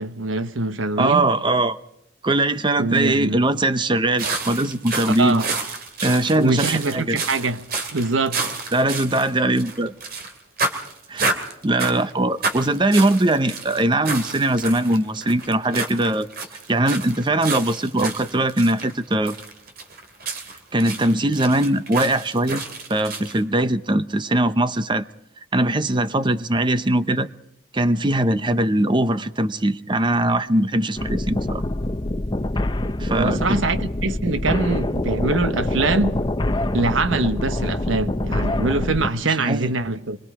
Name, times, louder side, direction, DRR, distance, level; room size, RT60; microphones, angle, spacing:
voice 1, 0.0-1.3 2.8-3.4 5.2-5.5 6.4-7.6 7.9-8.5 33.1-36.2 36.7-40.2, right 3 dB, 85° right, 1.1 m, -23 dB
voice 2, 1.0-1.8 2.2-5.4 6.0-7.2 8.7-9.9 11.1-11.3 11.6-16.3 16.7-19.3 20.7-22.6 22.9-25.0 25.5-27.3 27.7-31.6 33.0-33.4 39.2-39.7, right 1 dB, 25° right, 0.7 m, -21 dB
sound 1, 4.2-10.3 10.6-12.1 12.4-23.4, right 3 dB, 50° right, 2.6 m, -30 dB
sound 2, 31.0-39.1, left 1 dB, 25° left, 0.8 m, -25 dB
25.5 x 22.5 x 4.9 m
head